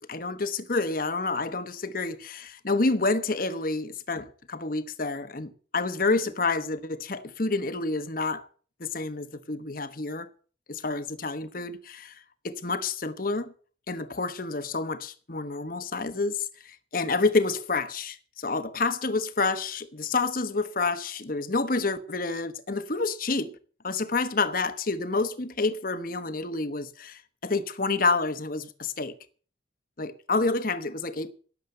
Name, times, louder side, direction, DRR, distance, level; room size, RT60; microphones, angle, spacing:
voice 1, 0.1-8.4 8.8-10.3 10.7-12.1 12.4-13.5 13.9-23.5 23.8-29.1 30.0-31.3, left 3 dB, 50° left, 1.1 m, -28 dB
18.0 x 7.4 x 6.7 m
head